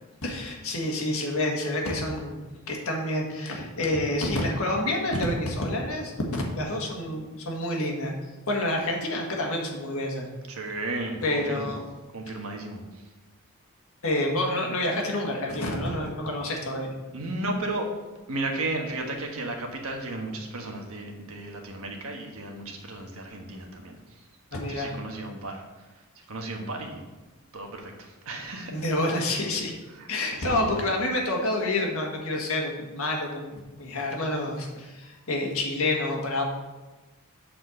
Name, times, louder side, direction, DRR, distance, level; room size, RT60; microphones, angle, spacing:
voice 1, 0.2-2.4 2.7-8.1 8.5-10.3 11.2-11.8 14.0-16.9 24.5-24.9 28.7-29.7 30.1-36.4, left 1 dB, 65° left, 0 dB, 1.7 m, -28 dB
voice 2, 10.5-11.7 12.1-13.0 17.1-17.9 18.3-24.0 24.7-25.6 26.3-27.0 27.5-28.8 29.9-30.7, right 2 dB, 65° right, 2 dB, 1.4 m, -34 dB
7.8 x 4.4 x 6.5 m, 1.1 s
head